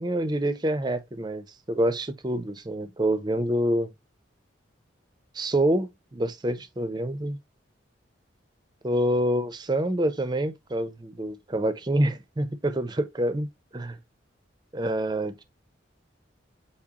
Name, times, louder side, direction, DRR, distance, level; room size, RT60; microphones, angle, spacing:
voice 1, 0.0-3.9 5.3-7.4 8.8-13.5 13.7-14.0 14.7-15.4, right 1 dB, 20° right, 0.5 m, -27 dB
4.4 x 3.6 x 2.8 m
head